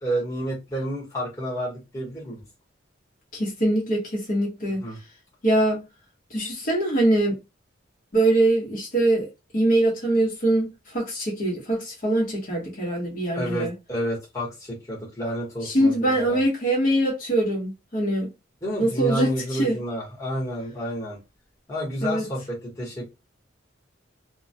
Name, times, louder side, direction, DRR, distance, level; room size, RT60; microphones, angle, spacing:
voice 1, 0.0-2.4 4.8-5.0 13.3-16.4 18.6-21.2 21.7-23.0, equal, 15° left, 1.0 m, -30 dB
voice 2, 3.3-4.8 5.4-5.8 6.3-7.4 8.1-9.3 9.5-13.7 15.6-18.3 18.8-19.8 22.0-22.2, right 1 dB, 45° left, 0.9 m, -23 dB
2.2 x 2.1 x 2.6 m
head